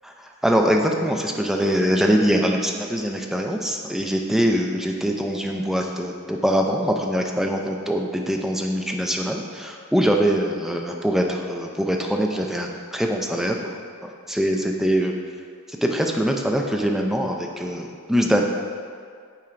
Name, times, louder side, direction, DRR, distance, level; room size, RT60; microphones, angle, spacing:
voice 1, 0.4-13.6 14.0-15.1 15.8-18.4, equal, ahead, 1 dB, 0.4 m, -23 dB
8.6 x 4.4 x 2.5 m, 2.1 s
head